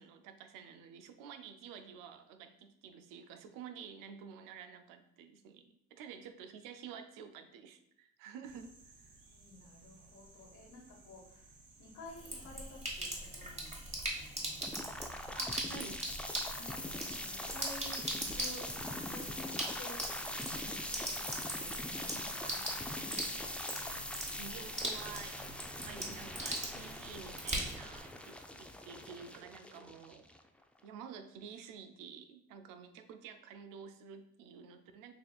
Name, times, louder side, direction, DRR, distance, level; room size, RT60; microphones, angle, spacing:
voice 1, 0.0-9.2 15.4-16.0 22.4-22.6 24.4-30.3 30.8-35.1, right 7 dB, 90° right, 9 dB, 0.5 m, -50 dB
sound 1, 8.4-19.5, right 3 dB, 75° right, 0.9 m, -59 dB
voice 2, 9.3-11.5 11.8-14.6 16.5-20.0 20.9-23.5, left 2 dB, 70° left, -2 dB, 1.5 m, -53 dB
Sink (filling or washing), 12.1-28.0, right 1 dB, 20° right, 1.3 m, -41 dB
sound 2, 14.6-30.6, left 1 dB, 5° left, 0.3 m, -42 dB
6.7 x 2.5 x 2.3 m, 0.75 s
supercardioid pair, 65°, 32 cm